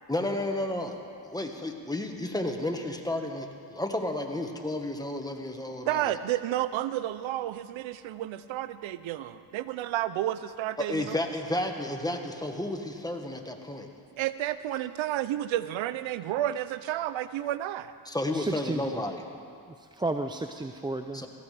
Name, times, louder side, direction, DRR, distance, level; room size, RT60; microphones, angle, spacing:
voice 1, 0.1-1.0 1.2-6.2 10.8-13.9 18.0-19.2 21.1-21.3, left 1 dB, 10° left, 3 dB, 1.4 m, -32 dB
voice 2, 5.9-11.2 14.2-17.9, right 13 dB, 80° right, 14 dB, 0.6 m, -31 dB
voice 3, 18.3-19.0 19.7-21.2, right 2 dB, 10° right, 7 dB, 0.4 m, -33 dB
17.5 x 15.0 x 3.3 m, 2.3 s
cardioid pair, 65°, 46 cm